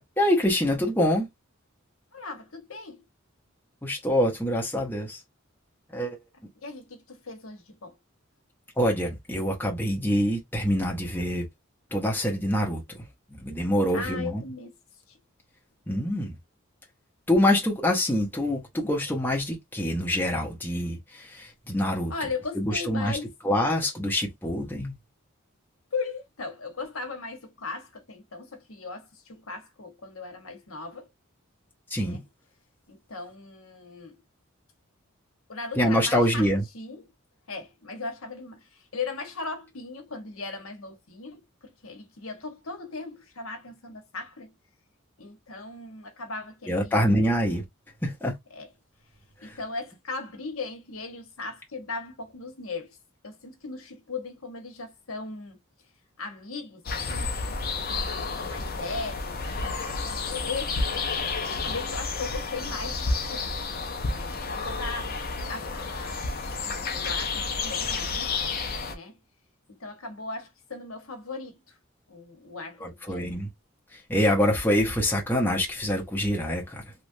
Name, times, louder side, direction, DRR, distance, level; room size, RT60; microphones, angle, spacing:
voice 1, 0.2-1.3 3.8-5.2 5.9-6.2 8.8-11.4 11.9-14.4 15.9-16.3 17.3-22.1 22.5-23.2 23.4-24.9 31.9-32.2 35.8-36.6 46.7-47.6 48.0-48.3 49.4-49.6 72.8-73.5 73.9-76.9, equal, 10° left, 0.8 m, -25 dB
voice 2, 2.1-3.1 6.6-8.0 13.9-14.7 15.1-15.2 22.1-23.3 25.9-31.1 32.0-32.2 32.9-34.2 35.5-36.5 36.7-37.1 37.5-44.5 45.2-47.1 48.5-48.7 49.4-53.0 53.2-55.6 56.2-57.3 57.9-60.8 61.5-63.6 64.1-65.2 65.5-66.3 66.6-68.4 68.9-69.2 69.7-71.8 72.1-73.3, left 4 dB, 80° left, 1.1 m, -38 dB
sound 1, 56.9-69.0, left 4 dB, 45° left, 0.7 m, -31 dB
3.2 x 2.4 x 2.6 m
head